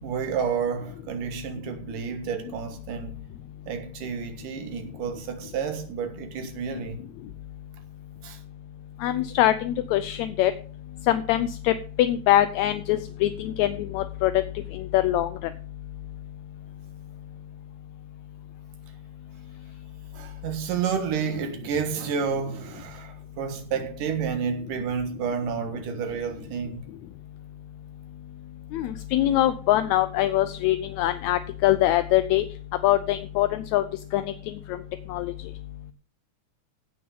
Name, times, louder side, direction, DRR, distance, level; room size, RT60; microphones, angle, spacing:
voice 1, 0.0-3.2 3.7-7.0 8.2-8.4 20.1-26.8, right 6 dB, 85° right, 3.2 m, -30 dB
voice 2, 9.0-10.5 11.1-14.3 14.7-15.3 28.7-32.4 32.8-33.8 34.1-34.3 35.1-35.3, left 13 dB, 75° left, 1.8 m, -23 dB
16.0 x 6.2 x 5.4 m
omnidirectional pair, 3.7 m